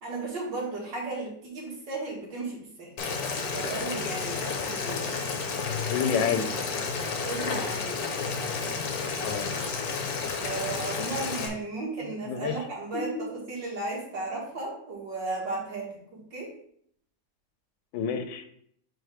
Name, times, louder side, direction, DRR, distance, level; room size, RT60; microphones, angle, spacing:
voice 1, 0.0-2.9 3.5-5.3 7.2-8.1 10.4-16.6, right 3 dB, 80° right, -2 dB, 2.4 m, -35 dB
Boiling, 3.0-11.5, left 5 dB, 60° left, 1.3 m, -31 dB
voice 2, 5.9-6.5 9.2-9.5 12.3-12.5 12.9-13.2 17.9-18.5, left 6 dB, 85° left, 7 dB, 1.3 m, -28 dB
4.8 x 4.4 x 4.9 m, 0.67 s
omnidirectional pair, 1.9 m